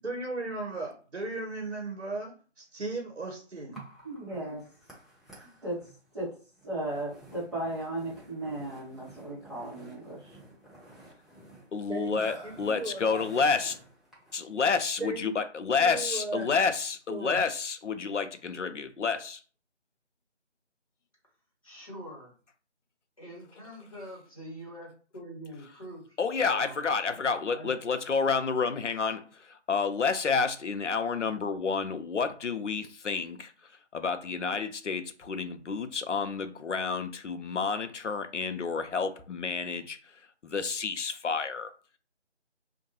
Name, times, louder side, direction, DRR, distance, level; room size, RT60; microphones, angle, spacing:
voice 1, 0.0-3.8 11.9-12.2 12.4-13.2 15.0-15.3 15.8-16.6 17.1-17.4, right 2 dB, 65° right, 0.8 m, -36 dB
Burping eructation, 3.7-14.4, right 1 dB, ahead, 0.4 m, -51 dB
voice 2, 4.0-4.6 5.6-5.8 6.1-6.3 6.6-10.4, right 1 dB, 25° right, 0.9 m, -35 dB
voice 3, 11.7-13.8 14.3-19.4 26.2-33.5 33.9-40.0 40.4-41.7, left 5 dB, 85° left, 0.5 m, -29 dB
voice 4, 21.6-22.3 23.2-26.2 26.4-26.9 27.5-27.7, equal, 30° left, 1.0 m, -44 dB
2.5 x 2.2 x 2.8 m
figure-of-eight pair, 165°, 35 cm